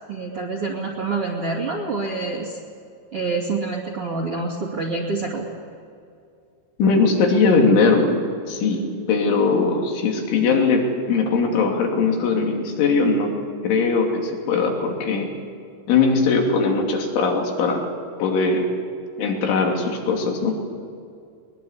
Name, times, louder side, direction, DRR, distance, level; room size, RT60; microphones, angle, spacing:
voice 1, 0.1-2.6 3.1-5.5, right 3 dB, 40° right, -1 dB, 2.7 m, -27 dB
voice 2, 6.8-8.2 8.5-8.8 9.1-13.3 13.6-15.3 15.9-17.9 18.2-18.7 19.2-20.6, left 4 dB, 85° left, 1 dB, 5.3 m, -20 dB
21.5 x 21.5 x 8.2 m, 2.4 s
omnidirectional pair, 5.3 m